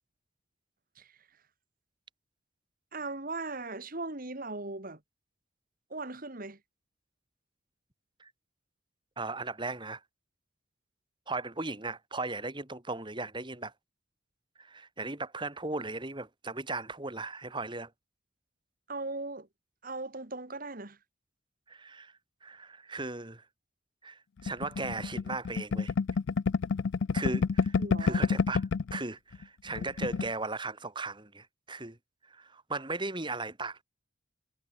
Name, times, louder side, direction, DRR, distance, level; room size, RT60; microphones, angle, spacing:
voice 1, 2.9-5.0 5.9-6.6 18.9-19.5 19.8-21.0 27.8-28.3, right 3 dB, 45° right, 2.0 m, -38 dB
voice 2, 9.2-10.0 11.3-13.7 14.6-17.9 21.7-23.4 24.0-25.9 27.1-32.0 32.2-33.8, right 3 dB, 25° right, 2.4 m, -37 dB
sound 1, 24.5-29.0 29.3-29.4 29.7-30.3, left 5 dB, 65° left, 0.4 m, -29 dB
head